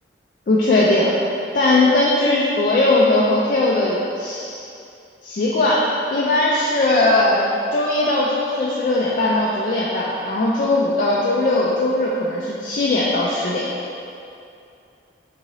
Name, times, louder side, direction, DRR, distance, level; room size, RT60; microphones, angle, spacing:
voice 1, 0.5-1.1 1.5-4.6 5.2-13.7, left 2 dB, 45° left, -5 dB, 0.4 m, -19 dB
3.8 x 3.7 x 3.1 m, 2.6 s
head